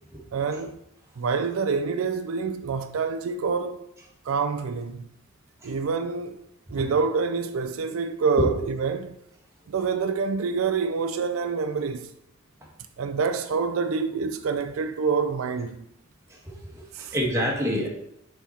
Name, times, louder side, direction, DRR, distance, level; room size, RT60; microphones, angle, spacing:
voice 1, 0.3-0.8 1.2-3.9 4.3-5.1 5.6-6.4 6.7-9.2 9.7-12.1 13.0-15.9 16.9-17.1, right 5 dB, 80° right, 0.4 m, -27 dB
voice 2, 16.3-17.9, equal, 15° right, 1.4 m, -27 dB
5.7 x 4.3 x 4.2 m
head